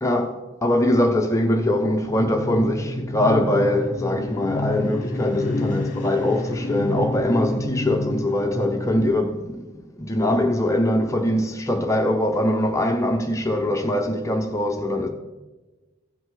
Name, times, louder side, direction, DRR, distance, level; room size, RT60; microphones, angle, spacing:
voice 1, 0.0-0.4 0.6-9.7 10.0-15.1, left 1 dB, 15° left, 0.6 m, -22 dB
sound 1, 1.8-9.1, left 2 dB, 40° left, 1.2 m, -29 dB
15.5 x 5.4 x 3.7 m
head